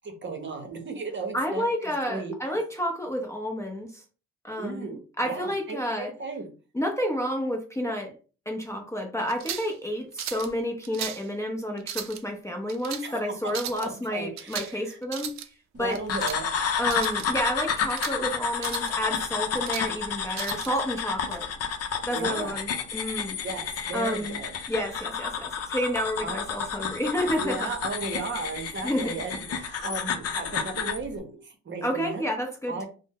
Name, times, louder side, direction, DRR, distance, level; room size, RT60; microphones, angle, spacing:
voice 1, 0.0-2.3 4.6-6.5 13.0-13.3 13.8-15.0 15.7-16.5 22.1-22.6 23.4-24.7 26.2-26.4 27.4-32.2 32.7-32.8, right 3 dB, 40° right, 4 dB, 0.8 m, -35 dB
voice 2, 1.3-4.0 4.4-6.1 6.7-8.1 8.5-15.4 15.8-16.0 16.8-21.5 22.1-23.4 23.9-24.4 24.7-27.6 28.8-29.2 31.8-32.8, equal, 10° left, 2 dB, 0.6 m, -30 dB
sound 1, 9.3-9.7 10.2-10.5 10.8-11.2 11.8-12.2 12.7-13.0 13.5-13.9 14.4-14.8 15.0-15.5 15.9-16.4 16.8-17.3 17.7-18.2 18.6-19.0 19.4-19.9 20.3-20.7, right 10 dB, 65° right, 0.4 m, -36 dB
sound 2, 16.1-31.0, left 6 dB, 55° left, 0.6 m, -31 dB
2.6 x 2.1 x 3.6 m, 0.36 s
cardioid pair, 90°, 30 cm